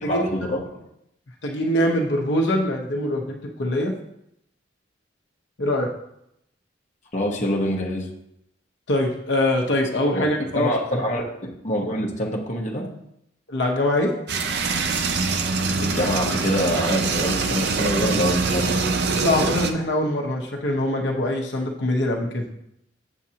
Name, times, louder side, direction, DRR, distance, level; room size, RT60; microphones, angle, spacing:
voice 1, 0.0-0.8 7.1-8.1 10.1-11.4 11.6-12.9 15.8-18.7, equal, 40° left, -1 dB, 1.0 m, -25 dB
voice 2, 1.4-3.9 5.6-5.9 8.9-10.7 13.5-14.1 19.2-22.4, left 1 dB, 70° left, 0 dB, 0.9 m, -23 dB
sound 1, 14.3-19.7, right 4 dB, 60° right, 0.6 m, -23 dB
7.3 x 7.2 x 2.8 m, 0.78 s
head